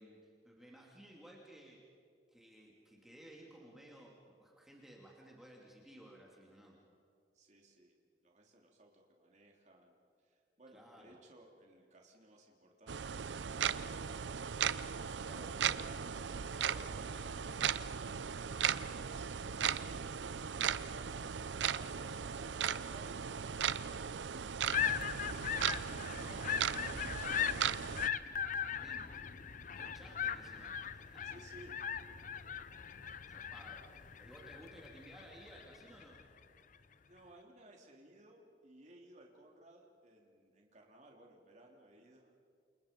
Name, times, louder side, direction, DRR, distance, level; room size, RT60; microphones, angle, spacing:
voice 1, 0.0-1.8 2.3-6.8 10.7-11.2 15.2-16.0 16.5-17.7 26.1-27.2 28.6-29.3 29.7-31.3 33.3-36.2, right 1 dB, ahead, -3 dB, 2.7 m, -57 dB
voice 2, 7.3-7.9 8.2-16.0 17.5-17.7 18.7-25.5 26.1-27.9 31.2-31.8 37.0-42.3, right 1 dB, 40° right, 0 dB, 3.3 m, -60 dB
sound 1, 12.9-28.1, right 8 dB, 85° right, 0.6 m, -37 dB
sound 2, 24.7-36.2, left 8 dB, 45° left, 0.7 m, -39 dB
29.0 x 28.5 x 5.3 m, 2.3 s
head